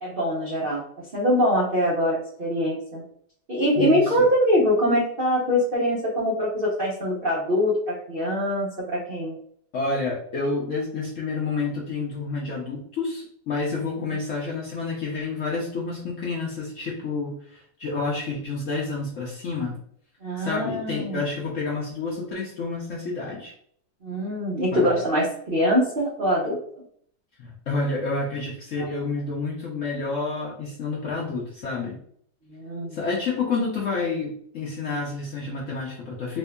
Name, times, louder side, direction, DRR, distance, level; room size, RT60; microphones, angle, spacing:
voice 1, 0.0-3.0 3.5-9.3 20.2-21.2 24.0-26.6 28.9-29.0 32.5-33.0, equal, 60° right, -5 dB, 0.5 m, -23 dB
voice 2, 3.8-4.3 9.7-19.8 20.4-23.5 24.7-24.9 27.4-32.0 32.9-36.4, left 3 dB, 65° left, -3 dB, 0.8 m, -29 dB
4.4 x 2.6 x 2.2 m, 0.64 s
omnidirectional pair, 2.0 m